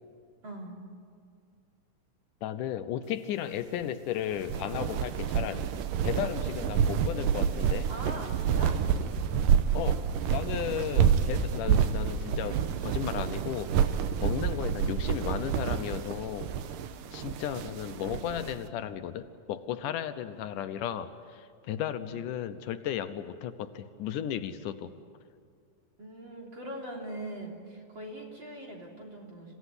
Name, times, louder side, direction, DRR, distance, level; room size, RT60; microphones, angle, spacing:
voice 1, 0.4-0.8 7.9-8.8 14.3-14.7 17.5-17.9 22.0-22.2 26.0-29.5, right 1 dB, 35° right, -1 dB, 4.0 m, -42 dB
voice 2, 2.4-5.7 6.0-7.9 9.7-10.0 10.3-14.0 14.2-16.5 17.1-24.9, left 10 dB, 80° left, 10 dB, 2.4 m, -35 dB
sound 1, 4.3-18.5, right 8 dB, 90° right, 2.6 m, -28 dB
27.5 x 16.5 x 9.9 m, 2.2 s
omnidirectional pair, 3.7 m